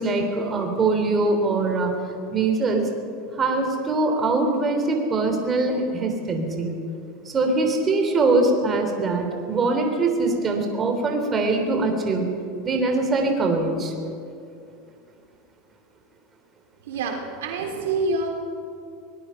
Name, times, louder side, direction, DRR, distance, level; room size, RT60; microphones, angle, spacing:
voice 1, 0.0-1.9 2.3-2.8 3.4-6.7 7.3-12.3 12.6-13.9, right 3 dB, 25° right, 3 dB, 3.6 m, -22 dB
voice 2, 16.8-18.3, right 3 dB, 85° right, 3 dB, 3.6 m, -26 dB
24.0 x 19.0 x 5.8 m, 2.5 s
supercardioid pair, 130°, 0 cm